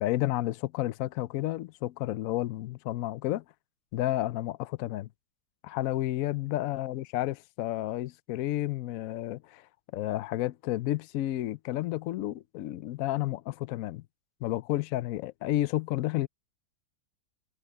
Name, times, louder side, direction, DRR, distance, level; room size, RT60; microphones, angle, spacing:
voice 1, 0.0-3.4 3.9-5.1 5.6-9.7 9.9-14.0 14.4-16.3, left 15 dB, 70° left, 0.9 m, -31 dB
omnidirectional pair, 1.7 m